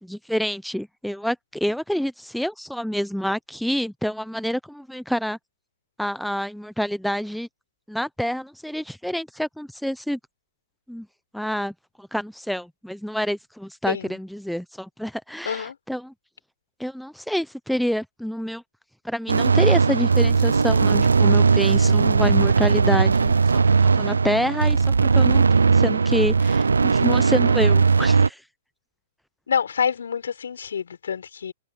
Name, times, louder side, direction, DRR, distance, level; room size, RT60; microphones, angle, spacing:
voice 1, 0.0-5.4 6.0-7.5 7.9-10.2 10.9-11.1 11.3-16.1 16.8-18.6 19.0-23.6 23.9-28.4, equal, ahead, 0.9 m, -27 dB
voice 2, 13.9-14.2 15.5-15.8 29.5-31.5, left 7 dB, 75° left, 5.4 m, -27 dB
sound 1, 19.3-28.3, right 5 dB, 85° right, 0.5 m, -18 dB
hypercardioid pair, 115°, 0 cm